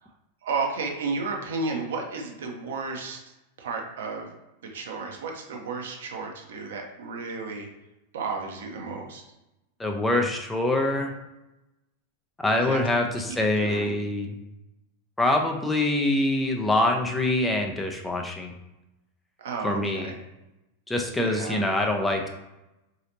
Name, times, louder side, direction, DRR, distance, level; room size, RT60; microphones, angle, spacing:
voice 1, 0.4-3.2 3.6-4.3 4.6-7.7 8.1-9.2 12.5-12.8 13.3-13.9 19.4-20.2 21.2-21.6, right 4 dB, 60° right, 1 dB, 0.7 m, -33 dB
voice 2, 9.8-11.1 12.4-14.3 15.2-18.5 19.6-20.1 20.9-22.3, left 1 dB, 10° left, 2 dB, 0.4 m, -25 dB
4.0 x 2.8 x 2.7 m, 0.95 s
figure-of-eight pair, 90°, 0 cm